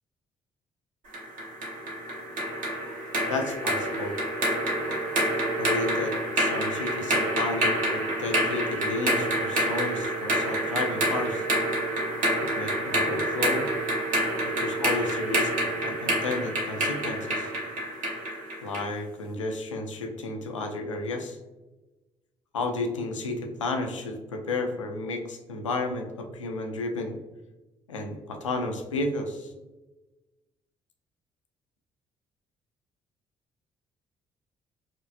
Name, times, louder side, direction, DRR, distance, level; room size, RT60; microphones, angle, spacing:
sound 1, 1.1-18.9, right 1 dB, 55° right, 1.0 m, -28 dB
voice 1, 3.3-4.2 5.6-11.4 12.6-13.6 14.5-17.5 18.6-21.4 22.5-27.2 27.9-29.5, left 2 dB, 90° left, 3 dB, 0.4 m, -32 dB
4.3 x 2.5 x 2.4 m, 1.1 s
figure-of-eight pair, 45°, 16 cm